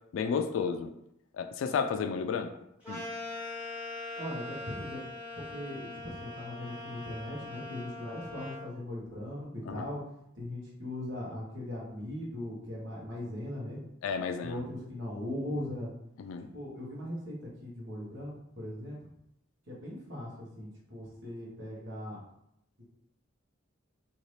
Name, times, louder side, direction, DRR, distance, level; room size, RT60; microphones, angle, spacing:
voice 1, 0.1-0.9 1.3-2.5 2.9-3.0 9.7-9.9 14.0-14.6 16.2-16.5, left 6 dB, 85° left, 9 dB, 0.3 m, -32 dB
sound 1, 2.8-8.7, left 2 dB, 5° right, 1.2 m, -41 dB
voice 2, 4.1-5.0 5.3-10.0 10.3-13.8 14.4-15.9 16.5-19.1 19.7-22.2, left 1 dB, 70° right, -5 dB, 1.2 m, -39 dB
2.8 x 2.7 x 3.2 m, 0.78 s
head